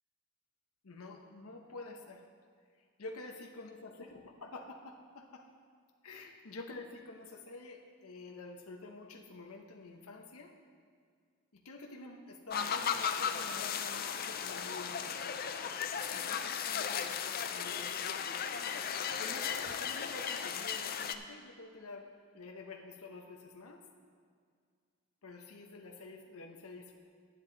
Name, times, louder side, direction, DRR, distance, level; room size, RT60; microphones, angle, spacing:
voice 1, 0.8-2.2 3.0-3.9 4.4-5.4 6.0-10.5 11.6-15.5 16.1-17.9 19.2-22.1 22.3-23.8 25.2-26.9, left 3 dB, 85° left, 3 dB, 0.9 m, -48 dB
sound 1, 12.5-21.1, left 7 dB, 45° left, 0.4 m, -36 dB
10.5 x 10.5 x 3.9 m, 2.1 s
head